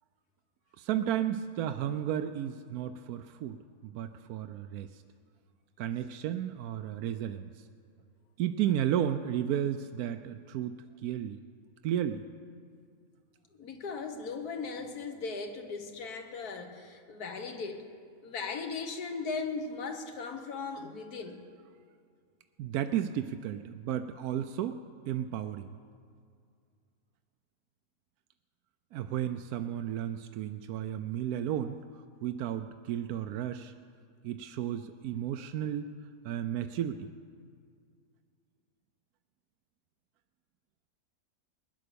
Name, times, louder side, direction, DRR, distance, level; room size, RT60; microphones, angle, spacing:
voice 1, 0.8-5.0 5.8-7.7 8.4-11.4 11.8-12.2 22.6-24.8 25.1-25.7 28.9-33.7 34.2-35.9 36.2-37.1, right 10 dB, 80° right, 8 dB, 1.1 m, -33 dB
voice 2, 13.5-17.9 18.2-21.4, left 4 dB, 90° left, 6 dB, 1.7 m, -38 dB
20.0 x 10.0 x 6.8 m, 2.2 s
omnidirectional pair, 1.6 m